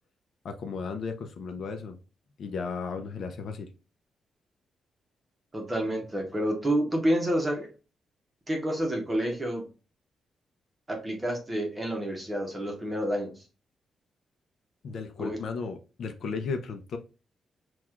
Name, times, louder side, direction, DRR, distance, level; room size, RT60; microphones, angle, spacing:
voice 1, 0.4-2.0 2.4-3.7 14.8-17.0, left 5 dB, 60° left, 5 dB, 0.5 m, -35 dB
voice 2, 5.5-7.7 8.5-9.7 10.9-13.3 15.2-15.5, equal, 15° right, 2 dB, 0.9 m, -29 dB
6.0 x 2.3 x 2.3 m, 0.32 s
wide cardioid pair, 170°, 0 cm